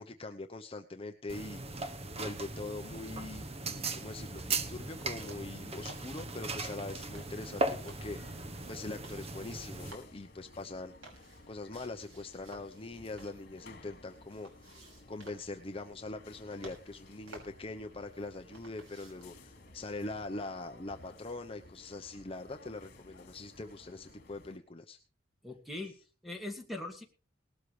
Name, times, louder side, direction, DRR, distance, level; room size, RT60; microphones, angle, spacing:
voice 1, 0.0-14.7 15.1-25.0, left 2 dB, 30° left, 5 dB, 0.8 m, -43 dB
sound 1, 1.3-9.9, right 3 dB, 30° right, 1.0 m, -38 dB
sound 2, 5.1-19.4, right 2 dB, 85° right, 6.1 m, -57 dB
sound 3, 5.7-24.6, left 2 dB, 50° left, 3.2 m, -56 dB
voice 2, 25.4-26.0 26.2-27.0, left 2 dB, ahead, 3 dB, 2.4 m, -40 dB
19.0 x 13.0 x 3.3 m, 0.36 s
head